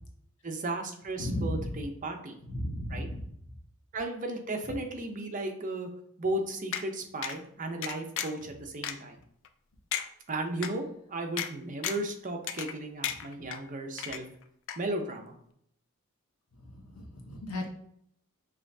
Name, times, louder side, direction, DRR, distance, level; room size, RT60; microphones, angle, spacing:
voice 1, 0.4-2.4 2.9-3.1 3.9-5.9 6.2-9.2 10.3-14.3 14.8-15.3, right 2 dB, 35° right, 3 dB, 0.6 m, -35 dB
voice 2, 1.2-1.7 2.5-3.2 16.9-17.6, left 1 dB, 80° left, 2 dB, 0.9 m, -34 dB
sound 1, 6.7-6.8 7.2-7.4 7.8-8.4 8.8-8.9 9.4-9.5 9.9-10.1 10.6-10.7 11.4-11.5 11.8-12.1 12.5-12.8 13.0-13.6 14.0-14.4 14.7-14.8, left 9 dB, 60° left, 0.4 m, -34 dB
5.4 x 3.1 x 2.7 m, 0.69 s
head